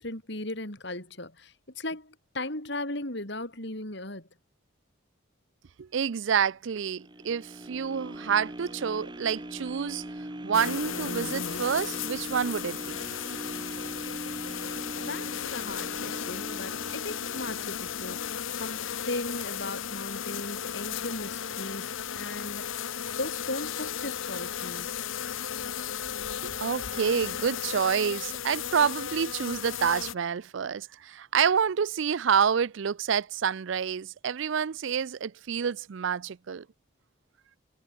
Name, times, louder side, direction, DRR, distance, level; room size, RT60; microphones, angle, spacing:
voice 1, 0.0-4.3 15.0-22.7 23.1-24.9, left 2 dB, 55° left, 4.0 m, -37 dB
voice 2, 5.8-13.0 26.4-36.7, right 7 dB, 65° right, 0.4 m, -28 dB
sound 1, 7.0-19.1 19.6-19.7, right 1 dB, 20° right, 1.6 m, -41 dB
sound 2, 10.5-30.1, left 8 dB, 70° left, 0.9 m, -35 dB
head